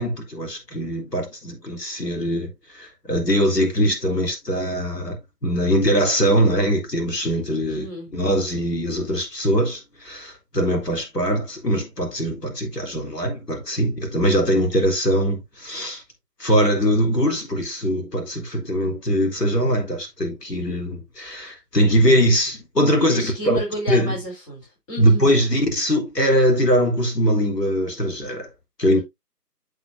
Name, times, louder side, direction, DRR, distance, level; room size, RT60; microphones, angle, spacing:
voice 1, 0.0-7.9 8.1-16.0 16.4-23.6 23.9-24.2 25.0-28.5 28.8-29.0, equal, 75° left, 4.0 m, -21 dB
voice 2, 7.6-8.1 23.1-25.3, right 1 dB, 20° left, 4.0 m, -32 dB
7.8 x 7.8 x 2.8 m
figure-of-eight pair, 150°, 49 cm